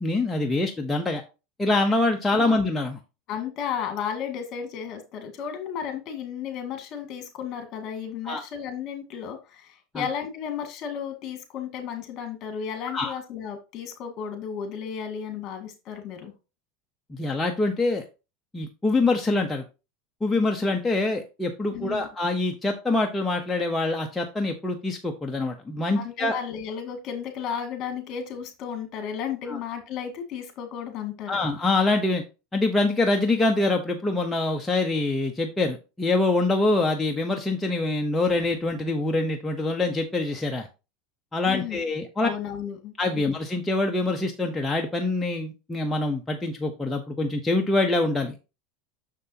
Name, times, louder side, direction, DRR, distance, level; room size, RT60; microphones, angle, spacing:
voice 1, 0.0-1.2 1.6-3.0 8.3-8.4 9.9-10.0 12.9-13.1 17.1-18.0 18.5-19.6 20.2-26.3 29.5-29.6 31.3-32.2 32.5-40.7 41.3-42.3 43.0-48.4, left 2 dB, 10° left, 1 dB, 0.8 m, -25 dB
voice 2, 3.3-16.3 21.7-22.1 25.9-31.4 41.4-41.8 42.2-43.2, left 8 dB, 40° left, 5 dB, 2.0 m, -34 dB
6.7 x 6.0 x 2.8 m, 0.29 s
supercardioid pair, 135°, 0 cm